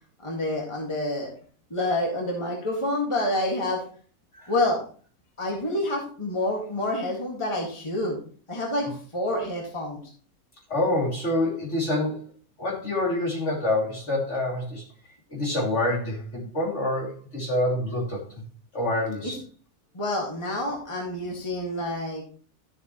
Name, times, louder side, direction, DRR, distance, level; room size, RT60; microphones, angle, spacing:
voice 1, 0.2-1.3 1.7-3.8 4.5-4.8 5.4-8.2 8.5-8.9 9.1-10.0 19.2-19.4 19.9-22.2, left 1 dB, 20° left, -1 dB, 2.0 m, -28 dB
voice 2, 10.7-12.2 12.6-14.8 15.3-18.2 18.7-19.4, left 1 dB, 50° left, -3 dB, 3.2 m, -26 dB
12.5 x 7.3 x 3.0 m, 0.43 s
omnidirectional pair, 1.5 m